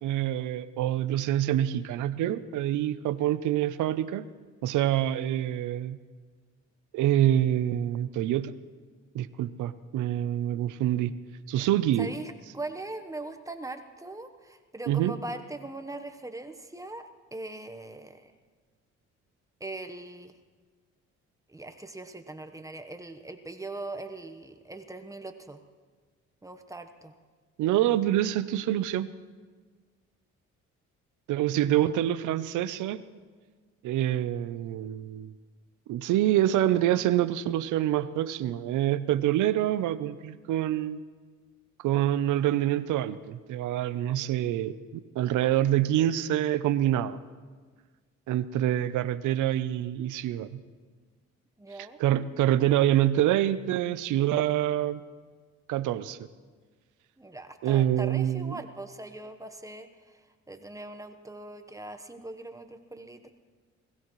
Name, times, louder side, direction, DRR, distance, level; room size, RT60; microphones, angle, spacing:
voice 1, 0.0-4.3 4.6-6.0 6.9-8.5 9.1-11.1 11.5-12.1 14.9-15.2 27.6-29.1 31.3-33.0 33.8-35.3 35.9-41.0 41.8-47.2 48.3-50.6 52.0-55.0 55.7-56.2 57.6-58.6, right 12 dB, 85° right, 14 dB, 0.7 m, -26 dB
voice 2, 12.0-18.3 19.6-20.4 21.5-25.6 26.4-27.1 51.6-52.0 57.2-63.3, right 2 dB, 10° right, 7 dB, 1.1 m, -41 dB
21.0 x 16.0 x 3.2 m, 1.5 s
cardioid pair, 90°, 30 cm